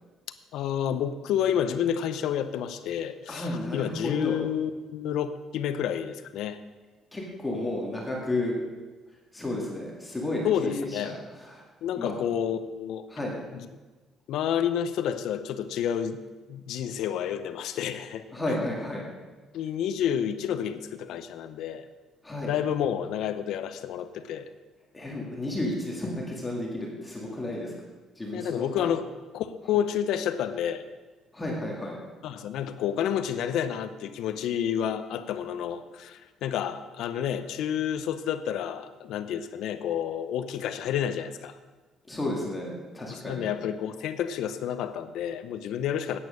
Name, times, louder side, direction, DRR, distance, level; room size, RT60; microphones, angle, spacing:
voice 1, 0.5-6.6 10.4-11.2 11.8-13.1 13.5-13.7 14.3-16.2 16.5-18.7 19.5-21.9 22.4-24.5 28.3-29.1 29.3-30.8 32.2-41.6 43.1-46.2, left 9 dB, 75° left, 11 dB, 0.7 m, -30 dB
voice 2, 3.3-4.4 7.1-8.5 9.3-11.2 11.5-11.6 12.0-12.1 13.1-13.4 18.3-19.0 22.2-22.5 24.9-27.7 28.2-28.6 31.3-32.0 42.1-43.5, left 1 dB, 10° left, -2 dB, 2.0 m, -32 dB
11.0 x 9.0 x 6.4 m, 1.3 s
cardioid pair, 145°, 0 cm